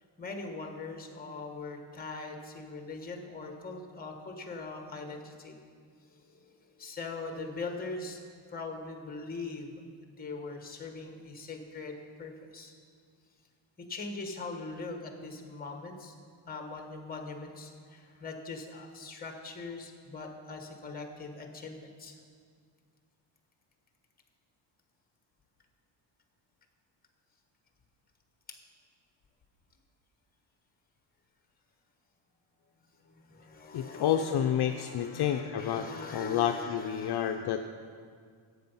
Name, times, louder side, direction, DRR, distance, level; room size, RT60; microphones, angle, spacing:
voice 1, 0.2-5.6 6.1-8.2 8.5-12.7 13.9-16.1 16.5-22.1 28.5-28.6 33.0-37.4, left 3 dB, 20° left, 3 dB, 1.3 m, -42 dB
voice 2, 33.7-35.8 36.1-37.7, left 9 dB, 55° left, 5 dB, 0.5 m, -29 dB
12.0 x 8.3 x 5.5 m, 2.1 s
wide cardioid pair, 170°, 47 cm